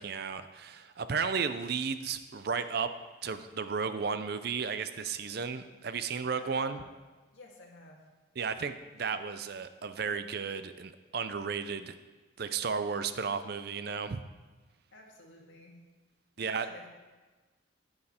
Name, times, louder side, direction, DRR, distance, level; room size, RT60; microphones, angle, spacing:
voice 1, 0.0-2.9 3.2-6.8 8.4-11.9 12.4-14.3 16.4-16.7, right 5 dB, 50° right, 11 dB, 0.5 m, -34 dB
voice 2, 6.4-6.9 7.3-8.1 14.9-15.7 16.4-16.9, left 2 dB, 75° left, -1 dB, 1.9 m, -52 dB
9.7 x 8.9 x 4.3 m, 1.3 s
head